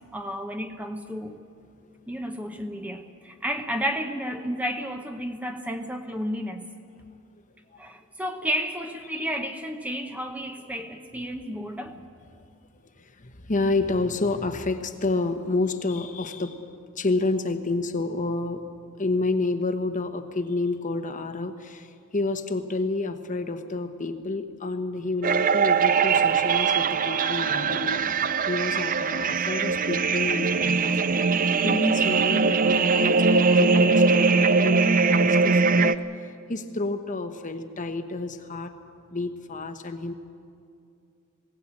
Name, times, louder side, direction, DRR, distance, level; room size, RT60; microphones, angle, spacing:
voice 1, 0.1-1.4 2.1-6.7 7.8-12.0, equal, 5° right, 0.9 m, -32 dB
voice 2, 13.0-16.7 17.0-18.6 19.0-35.9 36.5-38.8 39.1-40.1, left 3 dB, 35° left, 1.1 m, -29 dB
sound 1, 25.2-36.0, right 4 dB, 40° right, 0.5 m, -21 dB
21.0 x 17.0 x 8.8 m
head